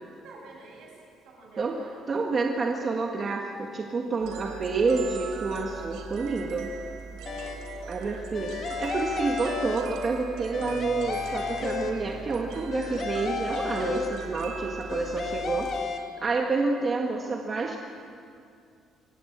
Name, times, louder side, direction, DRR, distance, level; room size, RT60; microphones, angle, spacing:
voice 1, 0.2-2.0 7.3-8.4 14.8-15.4, right 3 dB, 65° right, 0 dB, 7.3 m, -50 dB
voice 2, 2.1-6.7 7.9-17.8, right 3 dB, 30° right, 1 dB, 1.6 m, -29 dB
sound 1, 4.2-15.8, right 5 dB, 90° right, 3.4 m, -40 dB
sound 2, 7.3-7.8 8.3-10.2 10.5-12.3 12.7-14.5 14.9-16.0, left 6 dB, 35° left, 2.2 m, -33 dB
25.0 x 18.5 x 8.6 m, 2.4 s
cardioid pair, 165°, 0 cm